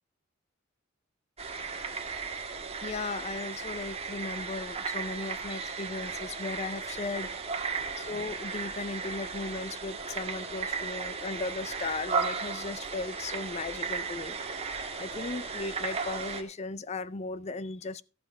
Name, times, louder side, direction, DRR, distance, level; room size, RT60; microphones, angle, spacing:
sound 1, 1.4-16.4, right 5 dB, 30° right, 1.5 m, -35 dB
voice 1, 2.8-7.3 8.0-14.4 15.0-18.0, left 3 dB, 30° left, 0.4 m, -36 dB
14.0 x 6.8 x 4.7 m
head